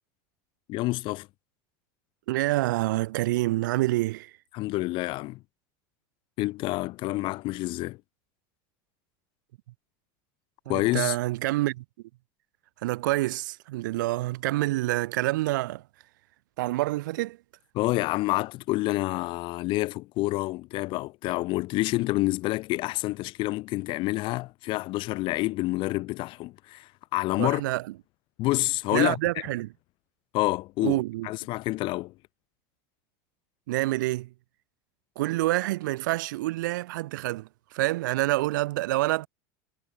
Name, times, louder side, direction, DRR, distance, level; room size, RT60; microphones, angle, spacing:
voice 1, 0.7-1.3 4.5-5.4 6.4-8.0 10.7-11.2 17.7-27.6 28.4-29.2 30.3-32.1, left 19 dB, 55° left, 3.4 m, -28 dB
voice 2, 2.3-4.3 10.7-11.8 12.8-15.8 16.6-17.4 27.4-27.9 28.9-29.7 30.8-31.3 33.7-34.3 35.2-39.3, right 18 dB, 80° right, 5.7 m, -27 dB
supercardioid pair, 115°, 10 cm